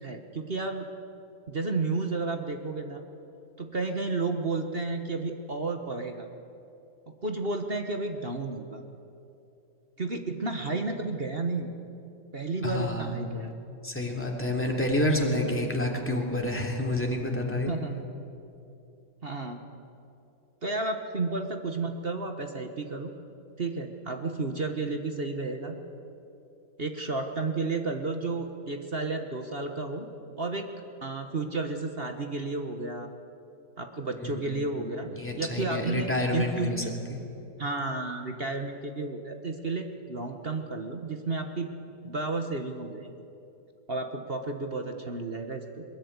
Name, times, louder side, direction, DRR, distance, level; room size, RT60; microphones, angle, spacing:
voice 1, 0.0-0.9 1.5-3.0 3.6-6.3 7.2-8.8 10.0-11.8 12.3-13.5 17.6-18.0 19.2-19.6 20.6-23.1 23.6-25.8 26.8-30.1 30.4-30.7 31.0-33.1 33.8-35.1 35.3-36.9 37.6-41.7 42.0-43.1 43.9-45.8, right 3 dB, 35° right, 5 dB, 1.5 m, -32 dB
voice 2, 12.6-13.3 13.8-17.7 34.2-34.6 35.1-36.8 37.1-37.2, left 1 dB, 5° left, 0 dB, 3.2 m, -29 dB
22.5 x 21.0 x 9.7 m, 2.8 s
omnidirectional pair, 1.8 m